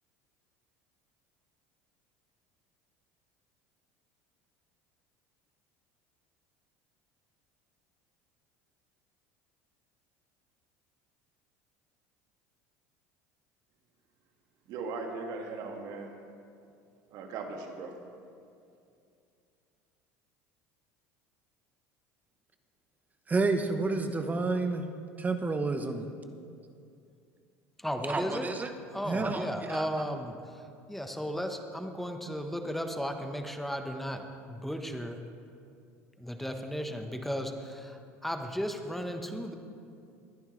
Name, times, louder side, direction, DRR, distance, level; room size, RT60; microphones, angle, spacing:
voice 1, 14.7-16.1 17.1-18.0, right 4 dB, 60° right, 3 dB, 1.8 m, -38 dB
voice 2, 23.3-24.8 25.2-26.1 28.1-28.7 29.0-29.9, right 3 dB, 20° right, 7 dB, 1.1 m, -30 dB
voice 3, 27.8-28.5 28.9-35.2 36.2-39.5, equal, 5° left, 5 dB, 1.2 m, -35 dB
20.5 x 10.5 x 3.3 m, 2.5 s
hypercardioid pair, 85°, 7 cm